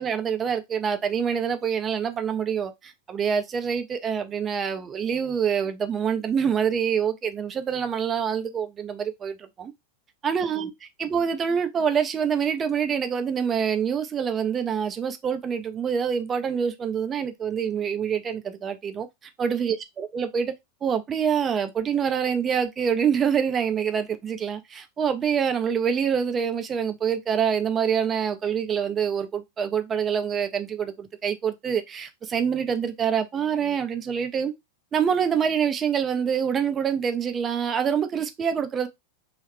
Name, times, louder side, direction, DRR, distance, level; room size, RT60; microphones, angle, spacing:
voice 1, 0.0-9.7 10.2-10.7 11.0-19.1 19.4-20.5 20.8-34.5 34.9-38.9, right 7 dB, 25° right, 0.6 m, -26 dB
3.1 x 2.4 x 3.3 m
figure-of-eight pair, 90°, 0 cm